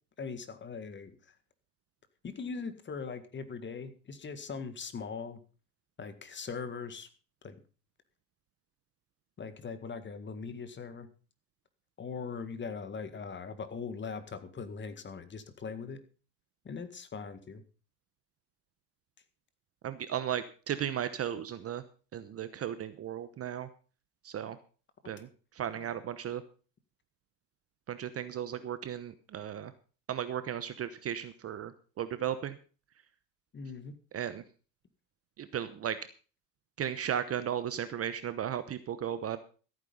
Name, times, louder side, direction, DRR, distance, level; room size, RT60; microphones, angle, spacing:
voice 1, 0.2-1.2 2.2-5.4 6.0-7.1 7.4-7.6 9.4-11.1 12.0-16.0 16.6-17.6 25.0-25.1 25.8-25.9 33.5-33.9, left 5 dB, 20° left, 11 dB, 1.9 m, -40 dB
voice 2, 19.8-21.8 22.1-23.7 24.2-24.6 25.0-25.3 25.6-26.4 27.9-29.7 30.1-31.7 32.0-32.6 34.1-34.4 35.4-36.0 36.8-39.4, right 9 dB, 30° right, 13 dB, 1.0 m, -35 dB
14.5 x 9.2 x 5.4 m, 0.37 s
supercardioid pair, 110°, 50 cm